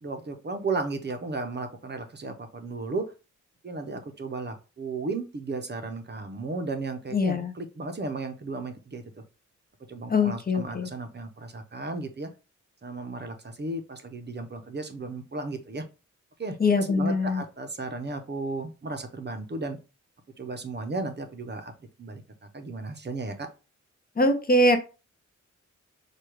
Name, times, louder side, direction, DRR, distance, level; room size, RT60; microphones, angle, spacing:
voice 1, 0.0-3.1 3.6-9.2 9.9-12.3 12.8-15.8 16.4-19.8 20.4-21.7 22.0-22.2 22.5-23.5, right 3 dB, 35° right, 6 dB, 0.6 m, -34 dB
voice 2, 7.1-7.5 10.1-10.9 16.6-17.4 24.2-24.8, left 2 dB, 30° left, 7 dB, 0.5 m, -23 dB
4.8 x 2.3 x 4.5 m, 0.31 s
wide cardioid pair, 170°, 30 cm